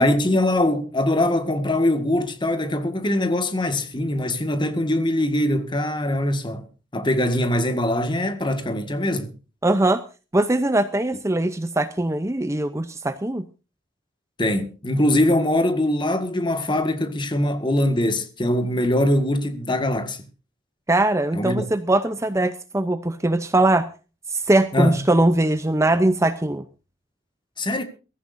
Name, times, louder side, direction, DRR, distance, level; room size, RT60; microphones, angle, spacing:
voice 1, 0.0-6.7 6.9-9.3 14.4-20.2 21.3-21.7 24.7-25.0 27.6-27.8, left 1 dB, 25° left, 1.8 m, -22 dB
voice 2, 9.6-10.0 10.3-13.4 20.9-23.9 24.3-26.6, right 2 dB, 15° right, 0.6 m, -21 dB
23.0 x 14.5 x 2.6 m
head